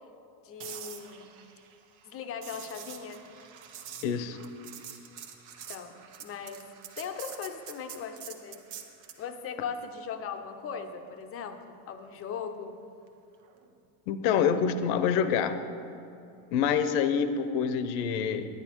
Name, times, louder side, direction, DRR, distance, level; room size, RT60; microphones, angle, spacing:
voice 1, 0.4-1.3 2.1-3.2 5.7-5.9 6.2-6.6 7.0-8.6 9.2-12.8, left 6 dB, 30° left, 7 dB, 0.6 m, -39 dB
sound 1, 0.6-9.3 13.4-13.7, right 8 dB, 60° right, 1.1 m, -46 dB
voice 2, 4.0-4.4 14.1-15.6 16.5-18.5, left 7 dB, 70° left, 10 dB, 0.9 m, -26 dB
10.5 x 10.0 x 4.5 m, 2.7 s
cardioid pair, 150°, 49 cm